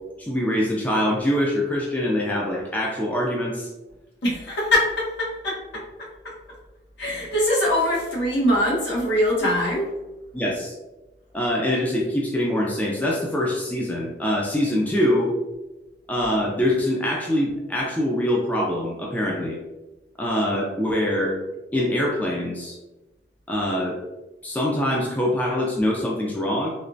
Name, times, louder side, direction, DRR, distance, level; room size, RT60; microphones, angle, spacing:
voice 1, 0.2-3.7 10.3-10.8 11.3-15.3 16.1-19.6 20.2-21.4 21.7-22.8 23.5-24.0 24.4-26.7, left 1 dB, 10° left, -3 dB, 0.4 m, -24 dB
voice 2, 4.2-5.8 7.0-9.9, left 1 dB, 80° left, -5 dB, 1.2 m, -22 dB
3.2 x 2.9 x 2.6 m, 1.0 s
head